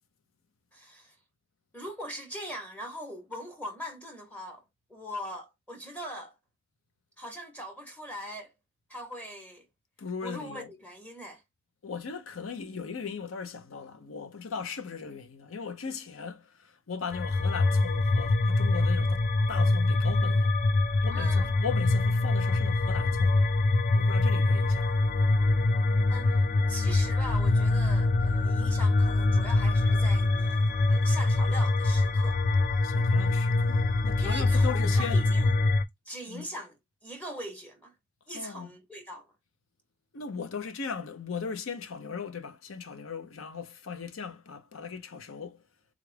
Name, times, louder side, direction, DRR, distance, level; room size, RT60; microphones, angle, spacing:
voice 1, 0.7-1.2 1.7-4.6 4.9-6.4 7.2-8.5 8.9-9.7 10.2-11.4 21.1-21.5 26.1-32.4 34.2-35.5 36.1-36.8 37.0-37.9 38.3-39.3, equal, 5° left, 0.7 m, -41 dB
voice 2, 10.0-10.7 11.8-20.5 21.0-23.4 23.9-24.9 32.8-35.2 36.3-36.5 38.3-38.7 40.1-45.6, left 6 dB, 85° left, 0.6 m, -38 dB
sound 1, 17.1-35.8, left 2 dB, 40° left, 0.3 m, -24 dB
3.6 x 2.4 x 3.2 m
head